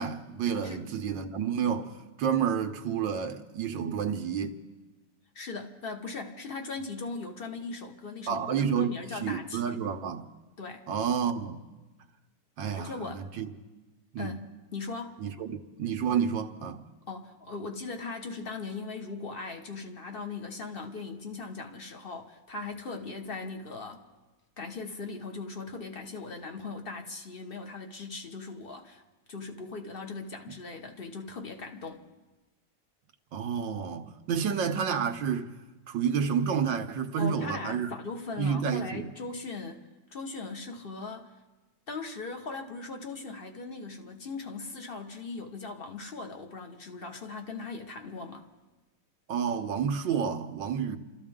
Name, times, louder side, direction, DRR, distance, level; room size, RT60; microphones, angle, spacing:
voice 1, 0.0-1.9 2.2-4.6 8.3-8.9 9.2-10.3 10.9-11.6 12.6-13.5 14.1-14.3 15.2-16.8 33.3-35.5 35.9-37.9 38.4-39.1 49.3-51.0, right 7 dB, 85° right, 1.6 m, -30 dB
voice 2, 5.3-9.8 10.6-10.9 12.7-13.3 14.2-14.4 14.7-15.2 17.1-24.0 24.6-29.0 29.3-32.1 37.2-39.8 40.1-41.3 41.9-48.5, left 3 dB, 35° left, 1.3 m, -39 dB
28.5 x 14.0 x 3.6 m
omnidirectional pair, 2.0 m